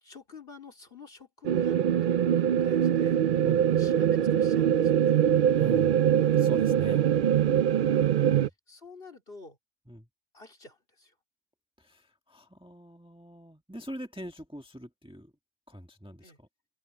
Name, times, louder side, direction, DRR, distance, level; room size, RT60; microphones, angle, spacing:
voice 1, 0.0-3.2 3.8-5.1 7.6-8.0 8.4-9.6 10.3-11.1 16.2-16.4, left 4 dB, 50° left, 3.5 m, -49 dB
sound 1, 1.4-8.5, right 10 dB, 60° right, 0.6 m, -23 dB
voice 2, 5.5-6.0 6.4-7.0 8.3-8.5 9.9-10.1 11.8-15.3 15.7-16.5, equal, 5° right, 1.6 m, -43 dB
open air
omnidirectional pair, 1.2 m